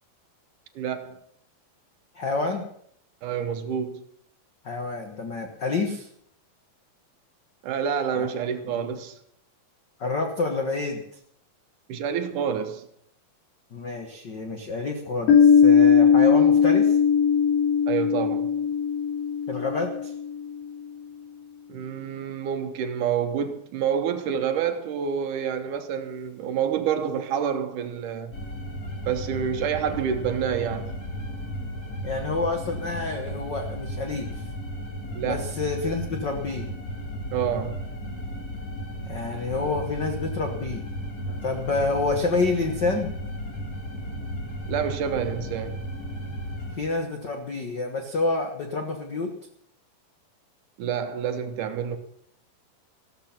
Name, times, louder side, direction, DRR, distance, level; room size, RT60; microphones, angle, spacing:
voice 1, 0.8-1.2 3.2-4.0 7.6-9.2 11.9-12.9 17.9-18.5 21.7-28.4 29.0-31.0 35.1-35.5 37.3-37.9 44.7-45.9 50.8-52.0, right 8 dB, 70° right, 2.2 m, -28 dB
voice 2, 2.1-2.7 4.6-6.1 8.1-8.3 8.7-8.9 10.0-11.0 13.7-17.0 19.5-20.1 32.0-34.5 35.3-36.7 39.1-40.9 41.3-43.1 46.7-49.3, left 3 dB, 80° left, 0.9 m, -28 dB
Piano, 15.3-20.7, left 7 dB, 55° left, 5.4 m, -19 dB
sound 1, 28.3-46.8, equal, 25° left, 2.7 m, -35 dB
15.0 x 13.5 x 5.8 m
omnidirectional pair, 4.3 m